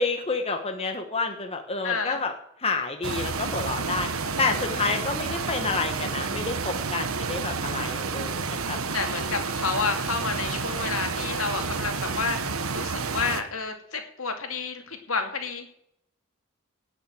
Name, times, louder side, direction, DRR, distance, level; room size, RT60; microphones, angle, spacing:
voice 1, 0.0-2.3 2.6-4.1 4.4-8.8, left 4 dB, 30° left, 4 dB, 1.2 m, -29 dB
voice 2, 1.8-2.2 4.2-4.4 4.7-5.1 7.7-8.0 8.9-12.4 12.7-15.7, left 5 dB, 70° left, 4 dB, 2.6 m, -30 dB
sound 1, 3.0-13.4, right 4 dB, 70° right, 1.2 m, -30 dB
18.0 x 6.6 x 7.7 m, 0.74 s
head